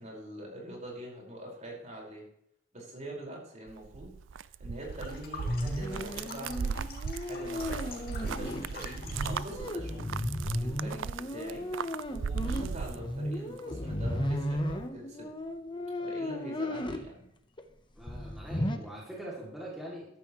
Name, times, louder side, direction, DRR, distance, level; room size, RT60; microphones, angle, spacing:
voice 1, 0.0-2.3 2.7-10.0 10.6-11.0 11.3-11.6 12.1-15.2 16.0-17.2 18.7-18.8, right 1 dB, 35° right, -2 dB, 5.2 m, -44 dB
sound 1, 3.7-13.6 13.9-14.8, right 6 dB, 70° right, 0.4 m, -37 dB
sound 2, 4.8-9.6, left 4 dB, 50° left, 2.5 m, -47 dB
sound 3, 5.5-17.1 17.6-17.7 18.0-18.8, left 1 dB, 25° left, 1.0 m, -35 dB
voice 2, 17.9-20.1, right 1 dB, ahead, -6 dB, 2.7 m, -43 dB
14.5 x 12.5 x 3.2 m, 0.74 s
head